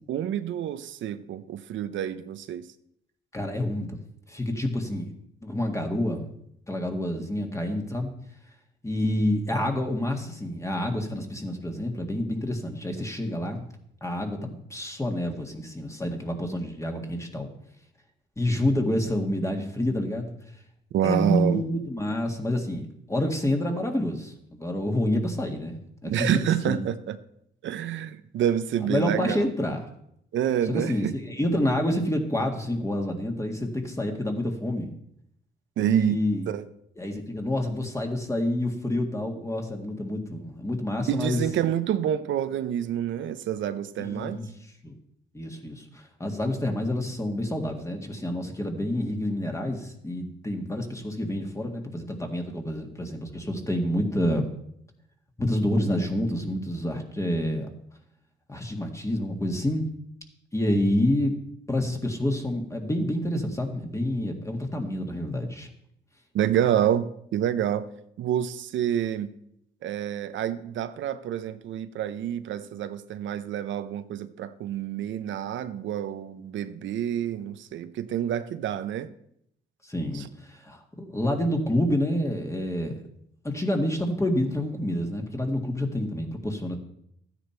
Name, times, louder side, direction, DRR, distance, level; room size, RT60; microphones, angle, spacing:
voice 1, 0.1-2.6 20.9-21.6 26.0-27.2 27.6-29.5 30.3-31.2 35.8-36.2 36.5-36.6 41.1-44.4 66.3-67.8 68.2-69.3 69.8-79.1 80.1-80.2, right 10 dB, 70° right, 0.7 m, -28 dB
voice 2, 3.3-4.0 4.3-5.1 5.4-6.2 6.7-8.1 8.8-13.7 14.0-17.5 18.4-20.3 21.0-26.4 26.6-26.8 28.8-29.9 30.7-34.9 35.8-36.5 37.0-41.4 44.0-44.5 44.8-45.0 45.3-54.5 55.4-57.7 58.5-59.9 60.5-61.4 61.7-65.7 79.8-83.0 83.4-86.8, left 1 dB, 15° left, 1.9 m, -28 dB
13.0 x 9.7 x 4.5 m
cardioid pair, 90°, 20 cm